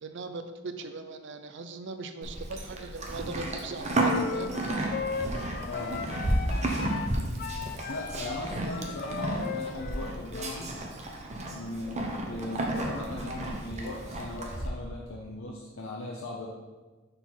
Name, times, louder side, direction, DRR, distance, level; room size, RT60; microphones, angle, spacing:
voice 1, 0.0-4.6, right 3 dB, 65° right, 8 dB, 0.5 m, -39 dB
Livestock farm animals working animals, 2.2-14.7, right 1 dB, 35° right, 0.8 m, -32 dB
sound 1, 4.0-10.6, left 5 dB, 45° left, 0.4 m, -37 dB
voice 2, 5.7-6.0 7.9-10.7 11.5-16.5, left 2 dB, 85° left, -2 dB, 0.7 m, -38 dB
6.0 x 3.9 x 4.3 m, 1.3 s
head